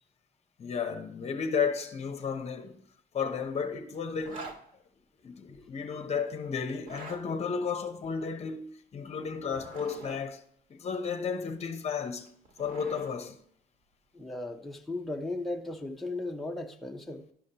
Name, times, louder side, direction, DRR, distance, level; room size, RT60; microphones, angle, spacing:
voice 1, 0.6-2.8 3.1-4.5 5.2-10.4 10.7-12.3 12.6-13.4, left 6 dB, 40° left, 0.8 m, -33 dB
Zipper (clothing), 4.2-4.6 6.7-7.2 9.3-10.2 12.1-13.2, right 3 dB, 55° right, 2.0 m, -45 dB
voice 2, 14.1-17.2, left 2 dB, ahead, 0.8 m, -36 dB
11.5 x 5.2 x 2.9 m
cardioid pair, 110°, 17 cm